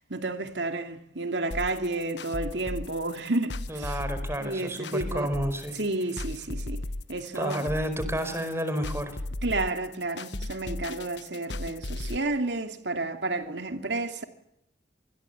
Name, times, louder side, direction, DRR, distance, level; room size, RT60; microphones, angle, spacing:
voice 1, 0.0-4.0 4.4-5.3 5.7-6.8 7.1-7.7 9.4-14.2, right 2 dB, 85° right, 2.5 m, -31 dB
sound 1, 1.5-12.2, left 2 dB, 90° left, 1.4 m, -36 dB
voice 2, 3.7-5.8 7.3-9.2, equal, 15° right, 4.8 m, -30 dB
27.0 x 20.5 x 8.2 m
head